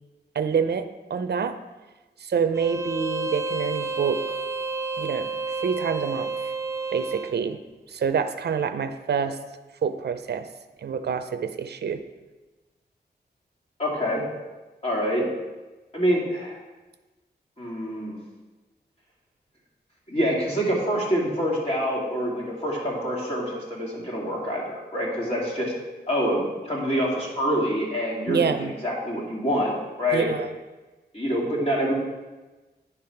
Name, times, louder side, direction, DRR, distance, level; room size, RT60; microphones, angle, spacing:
voice 1, 0.3-1.6 2.2-4.4 5.0-5.3 5.6-6.3 6.9-7.6 7.9-9.4 9.8-10.5 10.8-12.0 28.3-28.7 30.1-30.5, right 6 dB, 70° right, 9 dB, 0.5 m, -27 dB
Bowed string instrument, 2.5-7.4, right 3 dB, 15° right, 0.4 m, -30 dB
voice 2, 13.8-14.2 14.8-15.2 15.9-16.6 17.6-18.2 20.1-25.7 26.1-30.3 31.1-31.9, equal, 35° left, -5 dB, 2.6 m, -26 dB
9.8 x 3.4 x 5.7 m, 1.2 s
wide cardioid pair, 75°, 18 cm